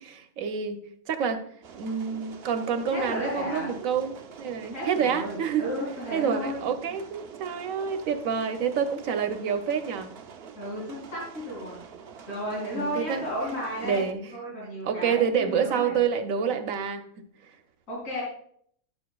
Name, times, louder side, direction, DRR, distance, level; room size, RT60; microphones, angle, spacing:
voice 1, 0.0-1.4 1.7-5.6 6.1-10.1 12.7-13.3 13.8-14.3 14.8-17.1, right 7 dB, 80° right, 7 dB, 1.2 m, -28 dB
sound 1, 1.6-14.1, right 7 dB, 55° right, 0.8 m, -46 dB
voice 2, 2.9-3.7 4.7-6.6 10.6-11.8 12.3-15.9 17.9-18.2, equal, 75° left, -5 dB, 3.6 m, -33 dB
11.0 x 7.1 x 2.3 m, 0.64 s
omnidirectional pair, 1.4 m